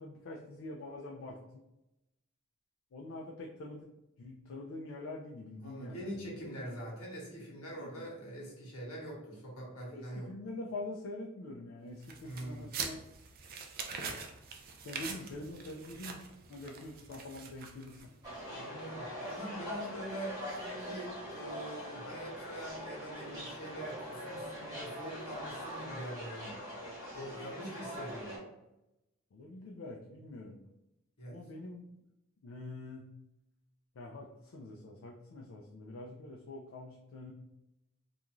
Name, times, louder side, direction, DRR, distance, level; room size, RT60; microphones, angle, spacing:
voice 1, 0.0-1.6 2.9-3.9 4.2-6.8 7.8-8.1 9.9-13.0 14.8-16.2 16.5-18.0 29.3-30.6 31.3-31.9 32.4-33.1 34.0-37.3, left 2 dB, 60° left, -1 dB, 0.3 m, -45 dB
voice 2, 5.6-10.3 12.2-12.7 18.5-26.6 27.1-28.4 31.2-31.4, right 1 dB, 80° left, -2 dB, 1.0 m, -44 dB
sound 1, 12.0-18.3, right 5 dB, 45° right, 0.3 m, -44 dB
sound 2, 18.2-28.4, equal, 20° right, 1.0 m, -43 dB
2.5 x 2.3 x 2.9 m, 0.91 s
head